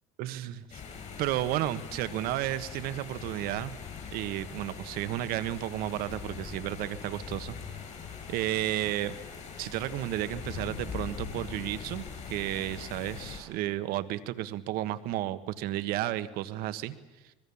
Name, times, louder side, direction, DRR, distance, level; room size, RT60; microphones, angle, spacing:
voice 1, 0.2-0.8 1.2-3.8 4.1-7.6 8.3-9.1 9.6-16.9, right 14 dB, 65° right, 12 dB, 1.5 m, -32 dB
sound 1, 0.7-13.4, left 6 dB, 45° left, 8.0 m, -42 dB
26.0 x 21.0 x 7.2 m, 1.1 s
supercardioid pair, 105°, 16 cm